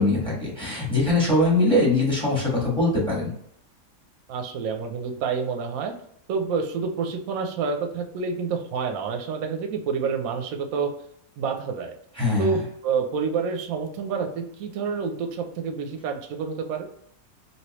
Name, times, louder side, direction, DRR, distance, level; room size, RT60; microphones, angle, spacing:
voice 1, 0.0-3.3 12.2-12.6, left 2 dB, 5° left, -5 dB, 1.2 m, -22 dB
voice 2, 4.3-5.9 6.3-10.9 11.4-11.9 12.4-16.8, right 5 dB, 70° right, 4 dB, 1.0 m, -28 dB
3.2 x 2.9 x 2.9 m, 0.71 s
omnidirectional pair, 1.6 m